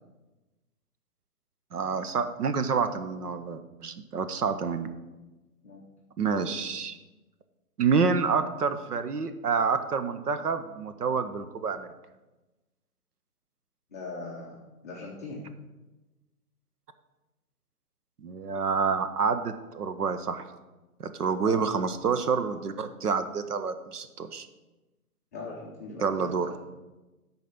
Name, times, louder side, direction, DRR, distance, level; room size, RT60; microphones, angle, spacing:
voice 1, 1.7-4.9 6.2-7.0 7.8-11.9 18.2-20.4 21.0-24.5 26.0-26.5, right 5 dB, 85° right, 10 dB, 0.9 m, -28 dB
voice 2, 13.9-15.4 21.4-21.7 25.3-26.5, left 3 dB, 10° left, -5 dB, 0.4 m, -40 dB
10.5 x 4.1 x 5.9 m, 1.1 s
hypercardioid pair, 135°, 46 cm